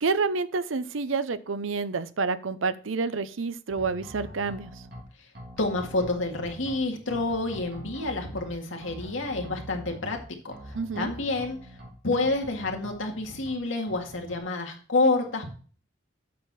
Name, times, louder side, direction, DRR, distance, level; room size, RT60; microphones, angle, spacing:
voice 1, 0.0-4.7 10.7-11.1, right 4 dB, 85° right, 14 dB, 0.7 m, -28 dB
sound 1, 3.7-5.0 5.3-6.8 7.1-8.5 8.8-10.2 10.5-11.9 12.2-13.5 13.9-14.4, equal, 50° right, 2.8 m, -44 dB
voice 2, 5.6-10.2 10.4-11.6 12.0-15.5, left 2 dB, 80° left, 2 dB, 2.0 m, -28 dB
8.5 x 6.4 x 4.2 m, 0.41 s
head